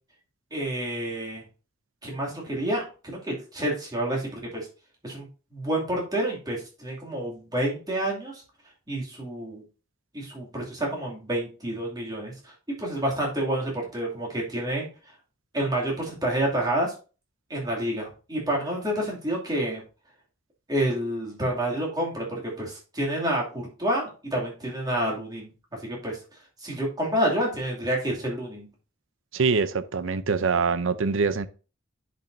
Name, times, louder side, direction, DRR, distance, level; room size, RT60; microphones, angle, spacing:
voice 1, 0.5-1.4 2.0-4.7 5.0-8.4 8.9-9.6 10.1-12.5 12.8-14.8 15.5-16.9 17.5-19.8 20.7-25.5 25.8-26.2 26.6-28.7, right 1 dB, 20° right, 2.6 m, -29 dB
voice 2, 29.3-31.5, right 4 dB, 65° right, 0.6 m, -24 dB
10.5 x 5.4 x 2.7 m
head